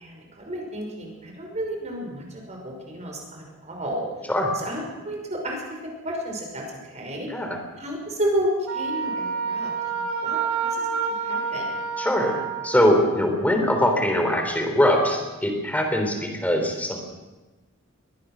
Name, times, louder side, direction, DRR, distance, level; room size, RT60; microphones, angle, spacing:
voice 1, 0.0-4.0 4.6-7.3 7.8-10.9 11.2-11.7, equal, 35° right, 1 dB, 5.7 m, -31 dB
voice 2, 7.3-7.6 12.0-17.0, equal, 5° left, 4 dB, 3.5 m, -22 dB
Wind instrument woodwind instrument, 8.7-12.8, right 5 dB, 90° right, 5.6 m, -28 dB
22.5 x 18.5 x 6.3 m, 1.2 s
head